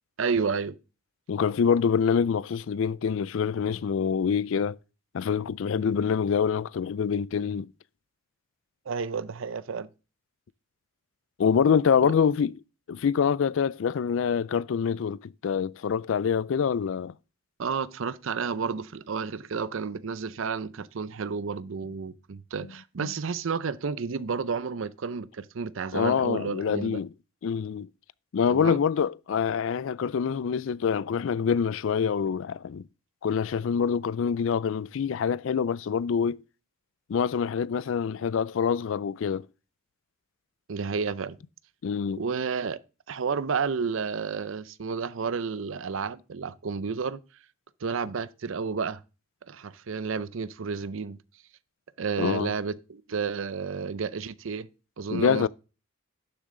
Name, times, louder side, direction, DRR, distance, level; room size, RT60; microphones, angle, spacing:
voice 1, 0.2-0.8 5.8-5.9 8.9-9.9 12.0-12.1 17.6-27.0 28.5-28.8 40.7-41.4 42.1-42.8 43.1-47.2 47.8-49.0 49.5-51.2 52.0-54.7 55.0-55.5, right 5 dB, 65° right, 0.5 m, -31 dB
voice 2, 1.3-4.8 5.1-7.7 11.4-12.5 12.9-17.1 23.0-23.1 25.9-27.1 27.4-27.9 28.3-32.8 33.2-36.4 37.1-39.5 41.8-42.2 52.2-52.5 55.1-55.5, left 6 dB, 65° left, 0.3 m, -25 dB
11.5 x 6.8 x 3.8 m
head